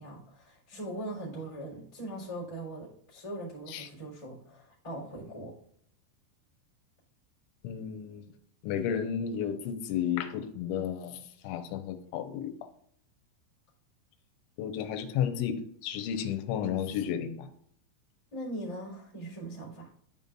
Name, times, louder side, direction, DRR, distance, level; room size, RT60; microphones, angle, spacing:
voice 1, 0.0-5.5 18.3-19.9, right 1 dB, 10° left, -6 dB, 2.8 m, -40 dB
voice 2, 7.6-8.2 8.6-12.5 14.6-17.5, left 8 dB, 90° left, 8 dB, 3.1 m, -32 dB
12.5 x 5.4 x 2.5 m, 0.66 s
omnidirectional pair, 5.3 m